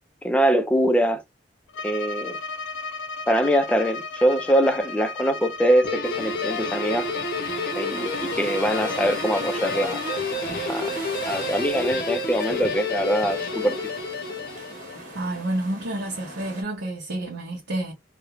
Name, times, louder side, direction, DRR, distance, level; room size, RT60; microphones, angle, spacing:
voice 1, 0.2-1.2 1.8-2.4 3.3-7.1 7.8-10.0 10.7-10.9 11.3-13.8, right 1 dB, 5° left, 0.4 m, -23 dB
Bowed string instrument, 1.7-10.3, left 3 dB, 90° left, 0.4 m, -35 dB
Guitar, 5.8-15.2, left 3 dB, 55° left, 0.7 m, -30 dB
sound 1, 6.0-16.6, right 1 dB, 45° right, 1.0 m, -39 dB
voice 2, 15.1-17.9, right 1 dB, 80° right, 0.7 m, -29 dB
2.4 x 2.1 x 2.9 m
head